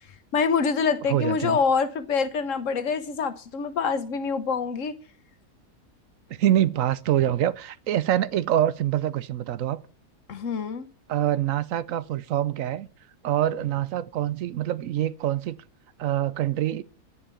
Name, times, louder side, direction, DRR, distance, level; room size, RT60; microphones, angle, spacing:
voice 1, 0.3-4.9 10.3-10.9, left 5 dB, 60° left, 1.4 m, -25 dB
voice 2, 1.1-1.6 6.3-9.8 11.1-12.9 13.2-15.5 16.0-16.8, right 12 dB, 70° right, 1.1 m, -25 dB
10.5 x 7.0 x 8.4 m
omnidirectional pair, 1.5 m